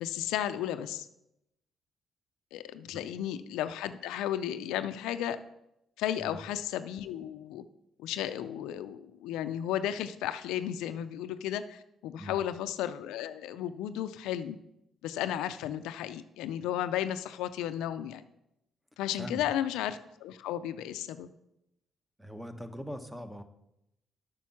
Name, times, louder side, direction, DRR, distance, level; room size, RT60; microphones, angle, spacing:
voice 1, 0.0-1.1 2.5-5.4 6.0-7.7 8.0-14.6 15.0-18.2 19.0-21.3, left 11 dB, 85° left, 12 dB, 0.4 m, -34 dB
voice 2, 22.2-23.4, equal, 5° right, 9 dB, 0.9 m, -41 dB
7.5 x 6.2 x 5.9 m, 0.84 s
supercardioid pair, 65°, 0 cm